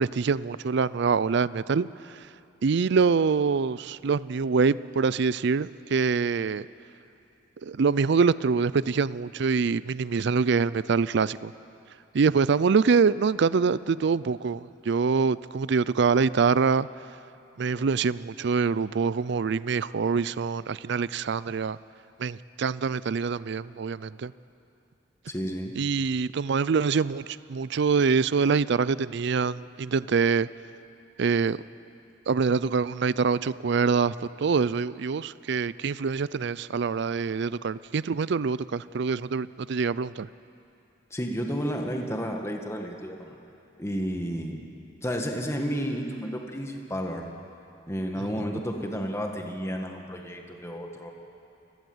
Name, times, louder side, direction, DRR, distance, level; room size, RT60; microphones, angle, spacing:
voice 1, 0.0-1.9 2.6-6.7 7.6-11.5 12.1-16.9 17.6-21.8 22.2-24.3 25.8-30.5 31.2-31.6 32.3-40.3 48.2-48.3, right 5 dB, 65° right, 18 dB, 0.4 m, -25 dB
voice 2, 25.3-25.7 41.1-43.3 43.8-44.7 45.0-47.3 47.9-51.1, equal, 15° left, 2 dB, 1.7 m, -31 dB
30.0 x 17.5 x 7.9 m, 2.7 s
head